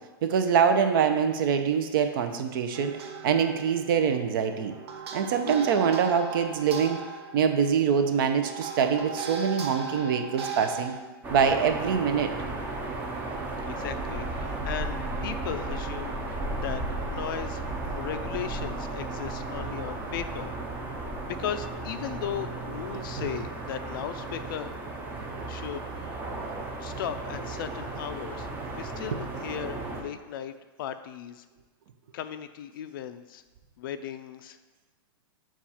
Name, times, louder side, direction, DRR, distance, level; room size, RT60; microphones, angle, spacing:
voice 1, 0.2-4.7 5.1-7.0 7.3-10.9 11.3-12.3 23.2-23.3, right 7 dB, 55° right, 7 dB, 0.6 m, -24 dB
sound 1, 2.7-11.0, right 5 dB, 85° right, 0.8 m, -38 dB
sound 2, 11.2-30.0, right 2 dB, 15° right, 0.5 m, -34 dB
voice 2, 13.7-17.6 17.9-20.5 20.9-24.8 25.5-26.2 26.8-28.5 28.7-31.4 32.1-33.4 33.8-34.6, left 9 dB, 55° left, 11 dB, 0.4 m, -37 dB
7.1 x 2.4 x 5.6 m, 1.3 s
supercardioid pair, 165°, 13 cm